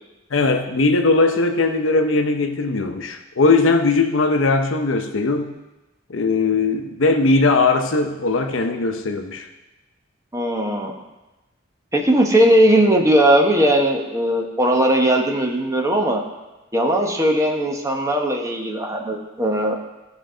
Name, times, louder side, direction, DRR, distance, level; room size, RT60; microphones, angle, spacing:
voice 1, 0.3-5.6 6.1-9.5, left 3 dB, 80° left, 6 dB, 0.7 m, -19 dB
voice 2, 10.3-10.9 11.9-16.2 16.7-19.7, right 1 dB, 15° right, 2 dB, 1.0 m, -18 dB
14.5 x 5.3 x 3.8 m, 1.1 s
head